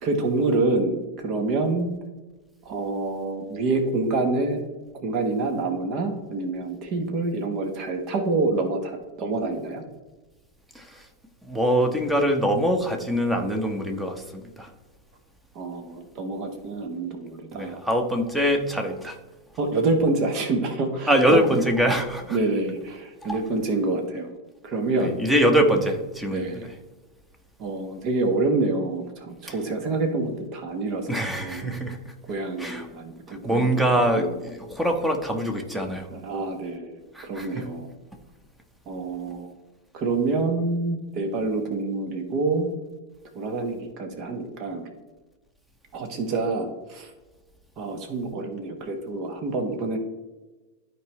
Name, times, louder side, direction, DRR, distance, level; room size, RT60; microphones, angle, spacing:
voice 1, 0.0-1.9 2.6-4.6 5.0-9.8 15.5-17.8 19.6-21.4 22.3-24.3 24.6-25.2 26.3-26.6 27.6-31.8 32.3-34.3 36.1-37.9 38.9-39.5 39.9-42.7 43.3-44.9 45.9-47.1 47.8-50.0, right 3 dB, 40° right, 5 dB, 1.2 m, -27 dB
voice 2, 11.5-14.7 17.5-19.2 21.1-22.4 25.0-26.7 31.1-32.0 32.6-32.9 33.3-36.1 37.1-37.7, equal, 5° right, 4 dB, 1.1 m, -23 dB
12.5 x 4.7 x 3.1 m, 1.2 s
figure-of-eight pair, 90°, 0 cm